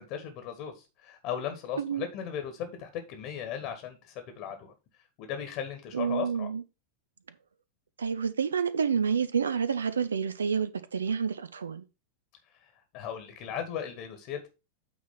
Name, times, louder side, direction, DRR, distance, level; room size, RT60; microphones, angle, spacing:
voice 1, 0.0-4.7 5.2-6.5 12.6-14.5, left 8 dB, 45° left, 1.5 m, -37 dB
voice 2, 5.9-6.6 8.0-11.8, right 6 dB, 70° right, 0.7 m, -29 dB
8.7 x 3.6 x 5.4 m
figure-of-eight pair, 90°, 0 cm